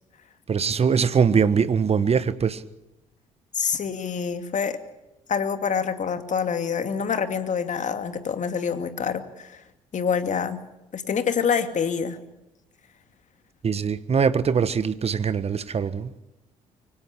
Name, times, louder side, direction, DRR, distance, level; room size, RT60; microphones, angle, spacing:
voice 1, 0.5-2.6 13.6-16.1, right 6 dB, 35° right, 1.4 m, -22 dB
voice 2, 3.5-4.8 5.3-9.6 9.9-10.6 10.9-12.2, left 6 dB, 45° left, 2.5 m, -26 dB
24.0 x 17.5 x 8.5 m
hypercardioid pair, 50°, 17 cm